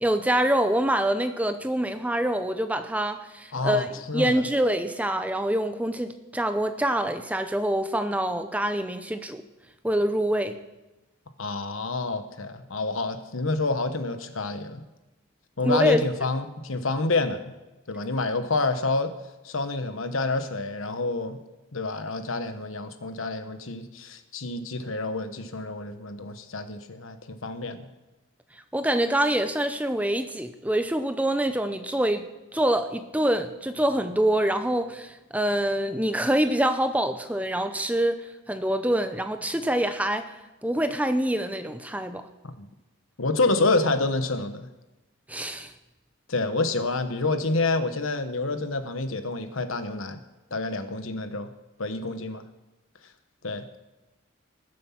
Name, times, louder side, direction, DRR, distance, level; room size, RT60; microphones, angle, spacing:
voice 1, 0.0-9.4 9.8-10.6 15.6-16.0 28.7-40.3 40.6-42.2 45.3-45.7, right 1 dB, 5° right, 8 dB, 0.6 m, -25 dB
voice 2, 3.5-4.3 11.4-14.8 15.6-17.5 17.9-19.1 19.4-21.4 21.7-27.9 42.4-42.7 43.2-44.7 46.3-50.2 50.5-51.5 51.8-52.4 53.4-53.6, left 3 dB, 80° left, 9 dB, 1.2 m, -28 dB
20.0 x 7.7 x 5.9 m, 1.0 s
head